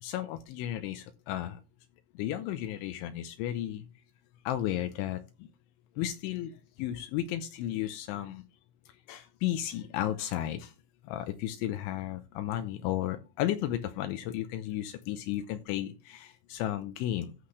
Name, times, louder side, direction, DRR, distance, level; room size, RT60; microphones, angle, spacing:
voice 1, 0.0-1.6 2.1-3.9 4.5-5.5 6.0-8.4 9.1-10.7 11.0-17.3, left 12 dB, 80° left, 9 dB, 3.0 m, -34 dB
14.0 x 5.8 x 3.3 m, 0.29 s
omnidirectional pair, 5.6 m